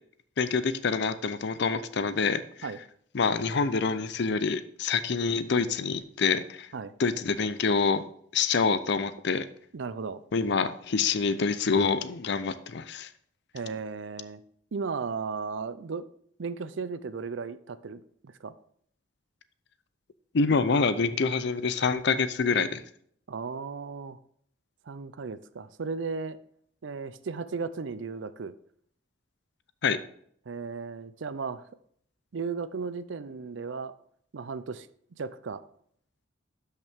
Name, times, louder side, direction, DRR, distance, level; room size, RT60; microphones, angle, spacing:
voice 1, 0.4-2.7 3.1-6.7 7.0-8.0 8.3-9.5 10.3-13.1 20.3-22.8 29.8-30.0, left 5 dB, 60° left, 13 dB, 0.6 m, -26 dB
voice 2, 9.7-10.2 13.5-14.4 14.7-16.1 16.4-18.5 23.3-24.2 24.9-26.4 26.8-28.5 30.5-31.6 32.3-33.9 34.3-34.9 35.2-35.6, right 5 dB, 70° right, 15 dB, 0.5 m, -35 dB
12.0 x 5.7 x 3.6 m, 0.64 s
head